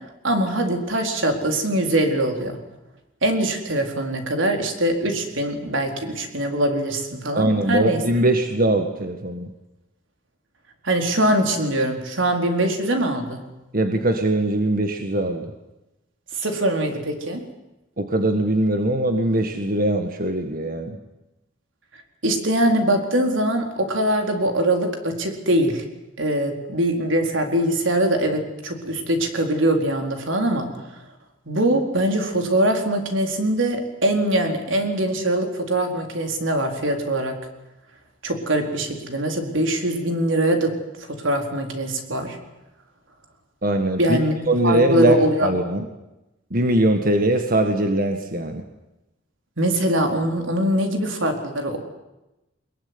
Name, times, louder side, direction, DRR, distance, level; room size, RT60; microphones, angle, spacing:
voice 1, 0.2-2.6 3.2-8.0 10.8-13.4 16.3-17.5 22.2-25.8 26.2-30.7 31.5-37.4 38.2-40.7 41.0-42.4 44.0-44.4 44.6-45.5 49.6-51.8, right 1 dB, 80° right, 4 dB, 4.4 m, -22 dB
voice 2, 7.4-9.5 13.7-15.5 18.0-21.0 43.6-44.2 44.5-45.9 46.5-48.7, right 1 dB, 45° right, 6 dB, 1.8 m, -21 dB
23.0 x 22.0 x 9.8 m, 0.97 s
head